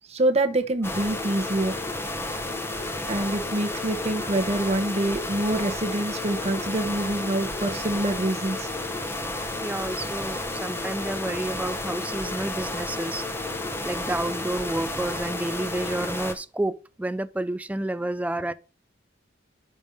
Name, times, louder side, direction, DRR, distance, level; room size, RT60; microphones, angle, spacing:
voice 1, 0.1-1.7 3.1-8.7 13.9-14.0, right 1 dB, 35° right, 0.9 m, -26 dB
sound 1, 0.8-16.3, left 2 dB, 15° left, 0.8 m, -32 dB
voice 2, 9.6-13.2 13.8-18.5, right 1 dB, 10° right, 0.3 m, -30 dB
5.3 x 5.3 x 6.5 m
head